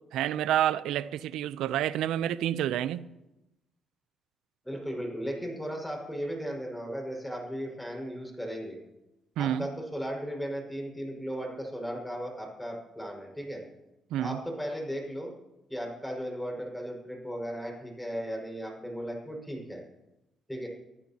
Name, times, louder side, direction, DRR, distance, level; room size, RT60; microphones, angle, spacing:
voice 1, 0.1-3.0 9.4-9.7 14.1-14.4, right 11 dB, 90° right, 0.6 m, -28 dB
voice 2, 4.6-8.8 9.4-13.6 14.2-15.3 15.7-19.8 20.5-20.7, equal, 5° left, 5.9 m, -36 dB
24.5 x 15.0 x 3.0 m
cardioid pair, 90°, 0 cm